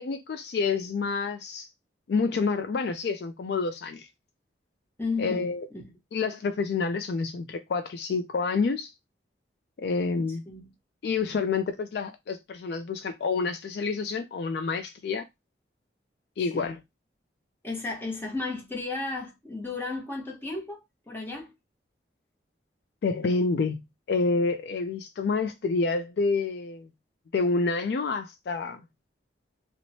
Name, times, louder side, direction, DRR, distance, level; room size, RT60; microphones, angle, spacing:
voice 1, 0.0-1.7 2.1-4.1 5.2-5.7 6.1-8.9 9.8-10.4 11.0-15.3 16.4-16.8 23.0-23.8 24.1-26.9 27.3-28.8, left 4 dB, 65° left, 0.3 m, -28 dB
voice 2, 5.0-5.9 10.5-10.7 16.5-16.8 17.6-21.5, left 3 dB, 10° left, 0.8 m, -34 dB
2.9 x 2.1 x 2.7 m
head